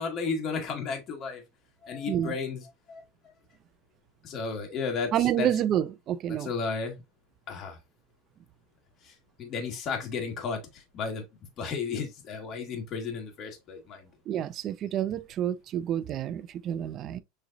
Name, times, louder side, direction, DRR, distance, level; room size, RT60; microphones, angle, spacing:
voice 1, 0.0-1.4 1.8-3.0 4.2-5.5 6.3-7.0 7.5-7.8 9.1-9.2 9.4-10.6 10.9-11.2 11.6-14.1, left 5 dB, 35° left, 1.4 m, -33 dB
voice 2, 5.1-6.5 14.3-17.2, right 11 dB, 35° right, 0.4 m, -29 dB
6.4 x 3.2 x 2.4 m
supercardioid pair, 140°, 0 cm